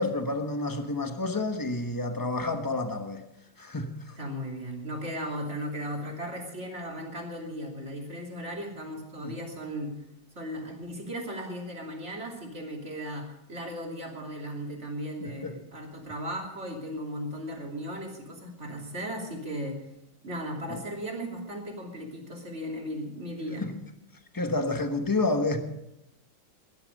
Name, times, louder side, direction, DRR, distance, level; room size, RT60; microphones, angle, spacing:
voice 1, 0.0-3.2 3.6-4.2 9.2-9.3 15.2-15.6 20.7-20.8 23.6-23.8 24.3-25.6, left 2 dB, 15° left, 0.7 m, -29 dB
voice 2, 4.2-9.9 10.3-19.8 20.2-23.6, equal, 35° right, 3.1 m, -36 dB
16.0 x 11.0 x 5.2 m
omnidirectional pair, 2.2 m